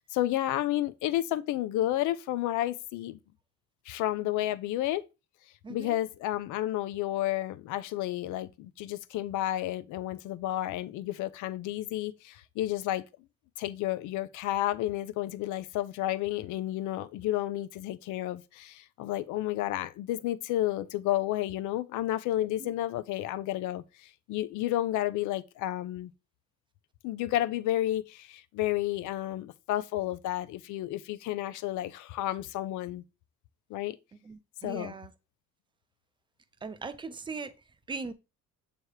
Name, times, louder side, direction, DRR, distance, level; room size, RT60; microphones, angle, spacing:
voice 1, 0.0-3.2 3.9-5.0 5.7-13.0 13.6-26.1 27.0-33.0 33.7-34.0 34.6-34.9, left 14 dB, 85° left, 0.6 m, -31 dB
voice 2, 5.6-6.0 22.6-22.7 34.2-35.1 36.6-38.1, right 4 dB, 15° right, 0.4 m, -40 dB
7.8 x 3.0 x 4.7 m
cardioid pair, 170°, 30 cm